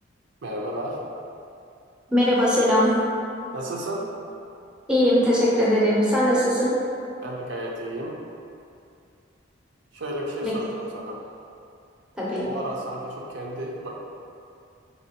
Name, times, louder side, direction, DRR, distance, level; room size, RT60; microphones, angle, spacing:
voice 1, 0.4-1.0 3.5-4.1 7.2-8.2 9.9-11.2 12.4-13.9, right 1 dB, 65° right, -2 dB, 0.5 m, -32 dB
voice 2, 2.1-2.9 4.9-6.7 10.4-10.6 12.1-12.5, equal, 5° right, -7 dB, 0.6 m, -20 dB
4.2 x 2.9 x 2.8 m, 2.5 s
head